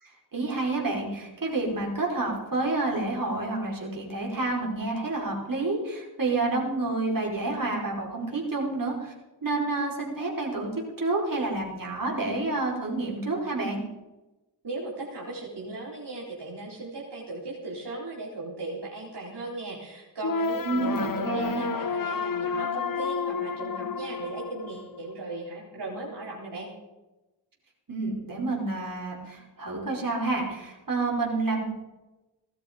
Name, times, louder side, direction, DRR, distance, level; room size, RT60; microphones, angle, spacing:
voice 1, 0.0-9.1 9.4-10.7 11.0-13.8 20.6-21.6 27.9-31.6, right 2 dB, 50° right, -2 dB, 5.0 m, -29 dB
voice 2, 14.6-26.7, right 2 dB, 70° right, -5 dB, 4.3 m, -37 dB
sound 1, 20.2-25.2, left 5 dB, 50° left, 0.9 m, -30 dB
18.0 x 12.5 x 5.3 m, 1.1 s
cardioid pair, 60°, 43 cm